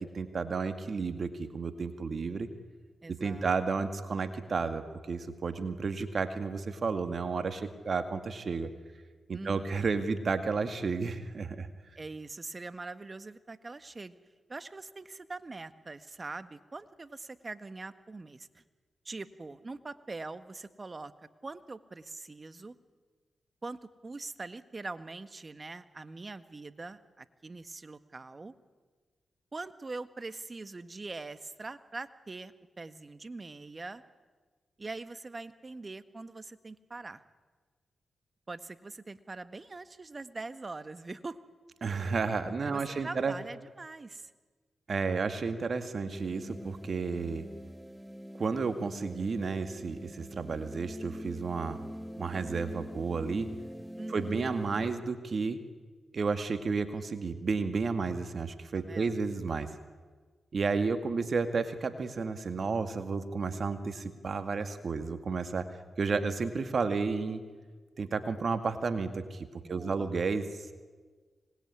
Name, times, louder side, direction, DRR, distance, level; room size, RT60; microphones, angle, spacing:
voice 1, 0.0-2.5 3.1-8.7 9.3-11.7 41.8-43.3 44.9-47.5 48.4-51.8 52.2-53.5 54.1-55.6 56.1-59.7 60.5-65.7 66.0-67.4 68.0-70.4, right 4 dB, 60° right, 9 dB, 2.1 m, -32 dB
voice 2, 3.0-3.5 9.3-9.8 12.0-14.1 14.5-18.6 19.0-21.1 21.4-22.8 23.6-28.5 29.5-34.0 34.8-37.2 38.5-41.4 42.7-44.3 54.0-54.5 58.7-59.2 69.6-70.1, right 3 dB, 40° right, 12 dB, 1.6 m, -43 dB
sound 1, 46.1-54.9, equal, 5° right, 1.6 m, -44 dB
25.5 x 20.5 x 9.8 m, 1.4 s
supercardioid pair, 40°, 0 cm